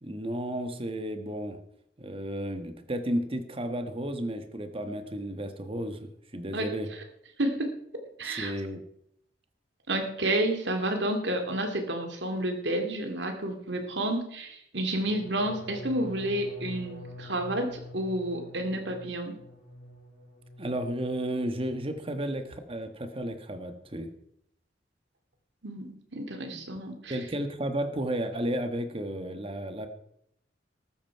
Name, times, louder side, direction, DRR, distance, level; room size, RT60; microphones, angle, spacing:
voice 1, 0.0-1.6 2.0-6.0 6.3-6.9 8.2-8.8 20.6-24.1 26.5-26.6 27.1-29.9, right 1 dB, 30° right, 8 dB, 1.3 m, -33 dB
voice 2, 7.4-8.5 9.9-19.4 25.6-27.2, right 1 dB, 65° right, 5 dB, 2.4 m, -30 dB
sound 1, 14.9-20.9 21.2-21.7 22.0-22.3, equal, 45° left, 5.3 m, -45 dB
13.5 x 13.5 x 4.7 m, 0.72 s
head